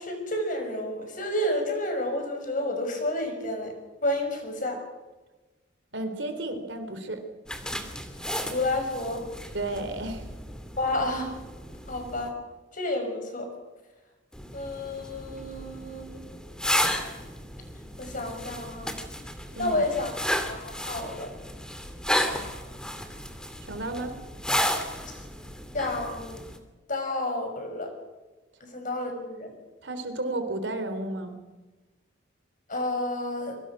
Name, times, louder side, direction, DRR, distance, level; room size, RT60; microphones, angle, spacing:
voice 1, 0.0-3.8 4.0-4.8 8.4-9.3 10.8-11.3 11.9-12.4 12.7-13.5 14.5-16.2 18.0-18.9 19.6-20.1 20.5-21.3 25.1-25.2 25.7-26.4 26.9-27.9 28.6-29.5 32.7-33.6, left 1 dB, 45° left, 4 dB, 6.4 m, -30 dB
voice 2, 5.9-7.2 9.5-10.3 19.5-19.8 23.6-24.2 29.8-31.4, right 2 dB, 65° right, 8 dB, 3.5 m, -32 dB
sound 1, 7.5-12.3 14.3-26.6, equal, 5° left, 2.4 m, -33 dB
25.5 x 23.5 x 6.2 m, 1.2 s
head